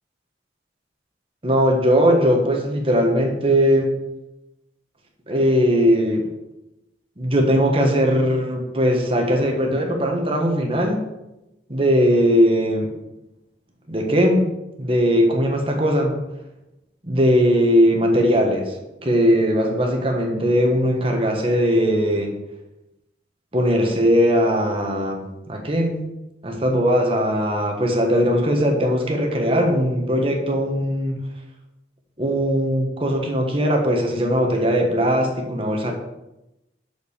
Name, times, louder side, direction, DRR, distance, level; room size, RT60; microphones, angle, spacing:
voice 1, 1.4-3.9 5.3-6.2 7.2-11.0 11.7-12.9 13.9-14.5 14.8-16.1 17.0-18.8 19.0-22.3 23.5-26.0 26.4-31.2 32.2-35.9, equal, 30° right, 2 dB, 1.5 m, -19 dB
6.5 x 5.7 x 6.6 m, 0.94 s
head